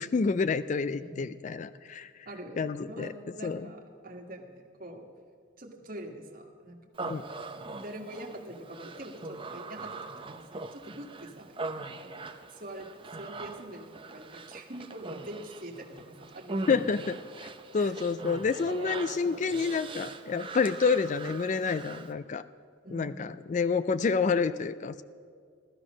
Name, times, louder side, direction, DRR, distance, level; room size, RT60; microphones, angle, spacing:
voice 1, 0.0-2.1 2.6-3.1 3.4-3.6 7.1-7.2 16.7-17.1 17.7-22.5 22.9-25.0, left 5 dB, 40° left, 14 dB, 0.3 m, -28 dB
voice 2, 0.9-1.2 2.2-5.1 5.6-7.2 7.5-12.2 12.5-17.0 17.7-17.9 18.7-19.6 22.8-23.2, right 1 dB, 45° right, 2 dB, 1.6 m, -44 dB
Human voice, 6.9-22.1, right 3 dB, 25° right, 0.6 m, -42 dB
15.0 x 12.5 x 6.2 m, 2.1 s
head